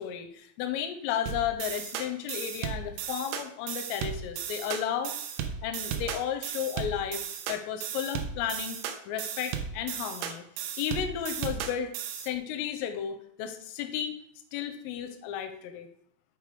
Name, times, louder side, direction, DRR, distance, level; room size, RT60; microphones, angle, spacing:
voice 1, 0.0-5.2 5.6-7.2 7.5-10.4 10.8-11.9 12.2-14.2 14.5-15.9, left 9 dB, 85° left, 6 dB, 3.2 m, -33 dB
sound 1, 1.3-12.3, right 8 dB, 90° right, 2.6 m, -35 dB
8.3 x 4.6 x 3.3 m, 0.70 s
omnidirectional pair, 5.8 m